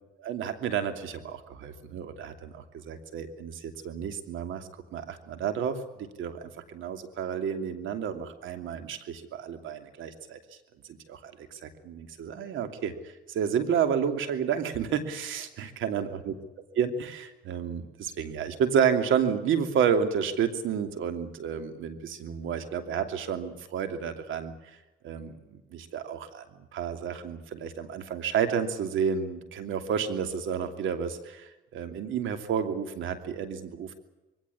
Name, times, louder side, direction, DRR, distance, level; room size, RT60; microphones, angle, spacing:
voice 1, 0.2-10.4 11.1-12.9 13.3-16.3 16.7-24.5 25.0-25.4 25.7-26.4 26.7-33.9, right 7 dB, 80° right, 8 dB, 2.9 m, -30 dB
22.5 x 17.0 x 9.9 m, 1.1 s
cardioid pair, 90°, 20 cm